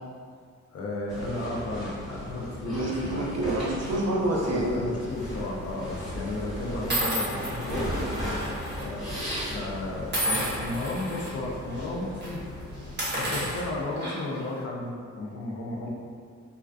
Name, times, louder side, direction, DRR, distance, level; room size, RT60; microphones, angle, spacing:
voice 1, 0.7-3.3 4.5-7.9 8.7-12.4 13.2-15.9, left 2 dB, 50° left, -2 dB, 0.5 m, -34 dB
sound 1, 1.1-13.8, equal, 5° right, 1.2 m, -36 dB
voice 2, 2.7-4.9, right 1 dB, 55° right, -3 dB, 0.5 m, -27 dB
sound 2, 5.2-5.5 6.3-6.4 6.9-8.8 9.1-9.3 10.1-11.3 11.7-11.9 12.2-12.3 12.8-14.4, right 1 dB, 35° right, 0.9 m, -31 dB
2.5 x 2.2 x 2.2 m, 2.1 s
cardioid pair, 105°, 30 cm